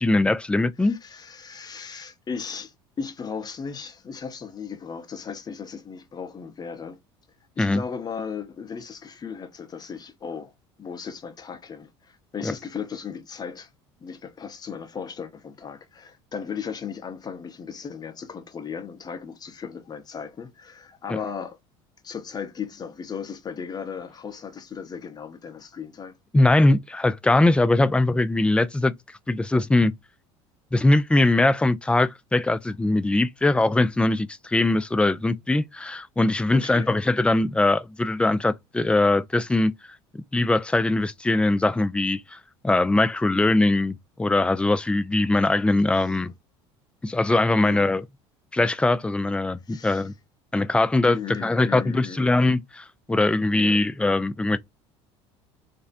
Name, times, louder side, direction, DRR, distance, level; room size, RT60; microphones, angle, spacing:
voice 1, 0.0-1.0 7.6-7.8 12.4-12.5 21.1-21.2 26.3-28.9 29.3-29.9 30.7-39.7 40.3-42.4 42.6-46.3 47.0-48.0 48.5-50.1 50.5-54.6, left 2 dB, 5° left, 0.3 m, -21 dB
voice 2, 0.8-7.0 7.6-10.5 10.8-13.7 14.0-21.6 22.0-26.1 36.5-37.0 45.9-46.3 47.5-47.9 49.7-50.1 51.0-52.4 53.5-53.8, left 6 dB, 30° left, 0.8 m, -36 dB
2.5 x 2.0 x 2.5 m
hypercardioid pair, 80°, 14 cm